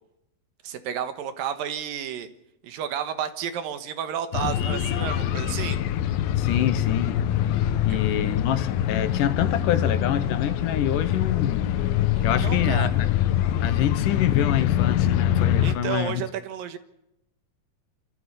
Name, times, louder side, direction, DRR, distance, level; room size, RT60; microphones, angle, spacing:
voice 1, 0.6-2.3 2.6-5.8 7.9-8.0 12.2-12.9 15.6-16.8, right 9 dB, 80° right, 3.1 m, -31 dB
sound 1, 4.3-15.8, left 10 dB, 85° left, 2.8 m, -24 dB
voice 2, 6.4-7.2 7.9-11.7 12.2-13.1 13.6-16.2, left 11 dB, 70° left, 2.5 m, -26 dB
28.0 x 13.5 x 6.8 m
omnidirectional pair, 4.0 m